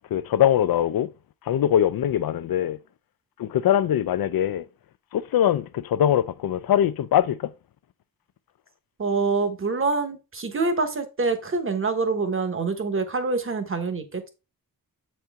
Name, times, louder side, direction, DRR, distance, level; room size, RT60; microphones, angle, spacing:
voice 1, 0.1-1.1 1.5-2.8 3.4-4.7 5.1-7.5, left 10 dB, 70° left, 0.5 m, -22 dB
voice 2, 9.0-14.3, right 4 dB, 35° right, 1.0 m, -26 dB
7.8 x 4.4 x 3.5 m
wide cardioid pair, 175°, 37 cm